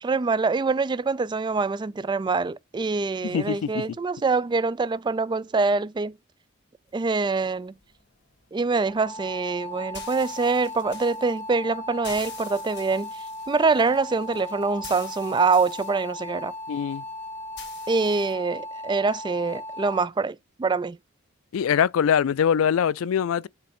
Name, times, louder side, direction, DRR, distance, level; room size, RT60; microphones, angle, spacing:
voice 1, 0.0-6.2 6.9-7.7 8.5-13.1 13.5-16.5 17.9-21.0, right 4 dB, 20° right, 0.3 m, -25 dB
voice 2, 3.2-3.9 16.7-17.0 21.5-23.5, left 8 dB, 85° left, 0.4 m, -23 dB
sound 1, 6.9-18.3, left 6 dB, 55° left, 1.8 m, -48 dB
sound 2, 8.9-20.1, left 2 dB, 10° left, 0.8 m, -37 dB
7.7 x 3.3 x 4.9 m
head